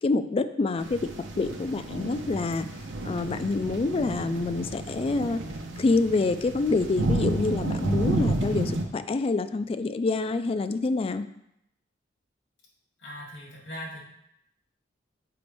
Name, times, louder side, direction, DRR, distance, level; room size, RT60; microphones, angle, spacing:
voice 1, 0.0-1.1 1.4-2.7 3.0-5.4 5.8-11.2, left 3 dB, 30° left, 11 dB, 0.3 m, -27 dB
sound 1, 0.8-8.8, right 2 dB, 80° right, 0.8 m, -31 dB
voice 2, 13.0-14.0, equal, 75° left, -3 dB, 2.4 m, -39 dB
6.8 x 5.0 x 3.4 m, 0.79 s
head